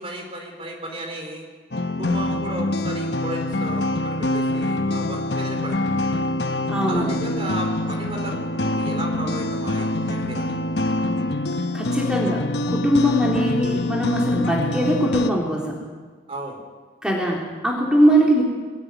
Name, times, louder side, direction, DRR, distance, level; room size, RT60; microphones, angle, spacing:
voice 1, 0.0-1.4 2.0-6.1 6.9-8.3 8.6-10.9 16.3-16.6 18.0-18.2, right 1 dB, 30° right, 1 dB, 3.9 m, -34 dB
sound 1, 1.7-15.3, left 2 dB, 65° left, 1.0 m, -25 dB
voice 2, 6.7-7.1 11.7-15.8 17.0-18.4, right 1 dB, 5° right, -3 dB, 3.5 m, -21 dB
22.5 x 16.5 x 9.2 m, 1.4 s
head